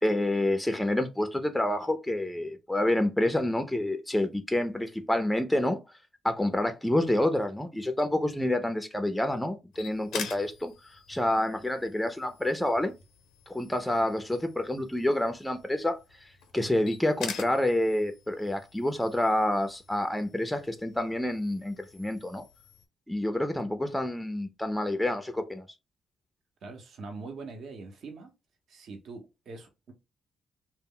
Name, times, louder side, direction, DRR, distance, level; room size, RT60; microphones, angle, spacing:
voice 1, 0.0-6.0 6.2-10.7 11.1-12.9 13.5-16.3 16.5-22.4 23.1-25.6, left 1 dB, 5° left, 0.4 m, -28 dB
sound 1, 9.7-22.9, left 7 dB, 85° left, 0.5 m, -46 dB
voice 2, 26.6-28.3 28.7-29.9, right 3 dB, 60° right, 0.7 m, -43 dB
2.0 x 2.0 x 3.6 m
cardioid pair, 90°, 0 cm